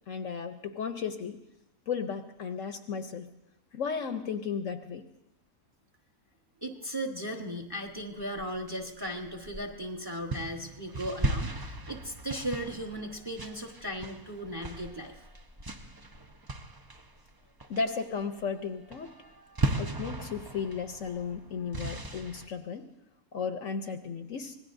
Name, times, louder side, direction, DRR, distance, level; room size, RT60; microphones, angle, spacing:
voice 1, 0.1-1.4 1.9-3.3 3.7-5.0 17.7-19.1 19.8-22.9 23.3-24.6, left 6 dB, 60° left, 7 dB, 1.1 m, -34 dB
voice 2, 6.6-15.3, equal, 15° right, 2 dB, 1.1 m, -37 dB
sound 1, 8.2-9.8 10.3-17.3 17.6-18.1 18.4-18.6 18.9-22.5, right 2 dB, 35° right, 0.3 m, -37 dB
25.5 x 19.0 x 2.6 m, 0.87 s
omnidirectional pair, 1.6 m